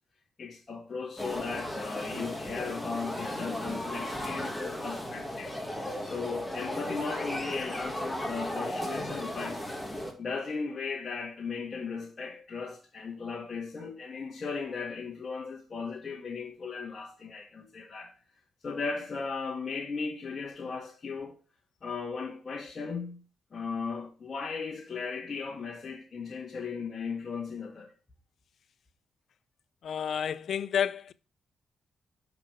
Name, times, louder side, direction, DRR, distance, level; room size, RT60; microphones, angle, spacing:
voice 1, 0.4-5.6 6.0-9.7 10.2-18.1 18.6-21.4 21.8-23.2 23.5-27.9, left 5 dB, 45° left, 1.7 m, -37 dB
sound 1, 1.2-10.1, left 1 dB, 5° left, 1.9 m, -36 dB
voice 2, 29.8-31.1, left 8 dB, 70° left, 0.4 m, -30 dB
6.0 x 5.0 x 5.0 m
cardioid pair, 65°, 0 cm